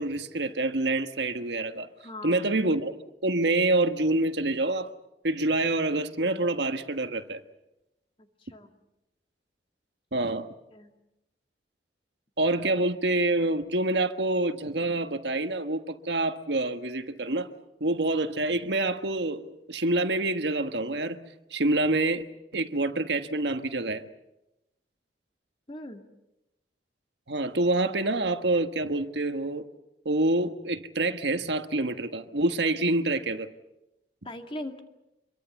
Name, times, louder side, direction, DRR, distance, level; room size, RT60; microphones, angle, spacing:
voice 1, 0.0-1.9 2.2-2.9 3.2-4.9 5.2-7.4 10.1-10.5 12.4-17.5 17.8-21.2 21.5-22.2 22.5-24.0 27.3-29.6 30.0-33.5, right 2 dB, 80° right, 1.5 m, -27 dB
voice 2, 2.0-2.6 8.4-8.7 10.7-10.9 25.7-26.0 34.2-34.8, left 1 dB, 30° left, 2.1 m, -39 dB
26.5 x 22.5 x 7.2 m
head